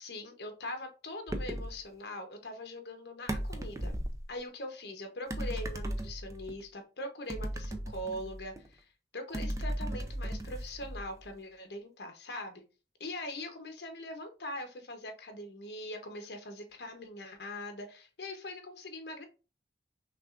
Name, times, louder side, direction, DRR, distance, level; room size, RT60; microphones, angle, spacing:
voice 1, 0.0-3.9 4.3-8.8 9.1-12.6 13.0-19.3, left 1 dB, 75° left, 5 dB, 0.9 m, -42 dB
sound 1, 1.3-1.8 3.3-4.2 5.3-6.5 7.3-8.7 9.3-11.2, right 1 dB, 20° right, 0.4 m, -36 dB
5.9 x 2.4 x 2.5 m, 0.33 s
head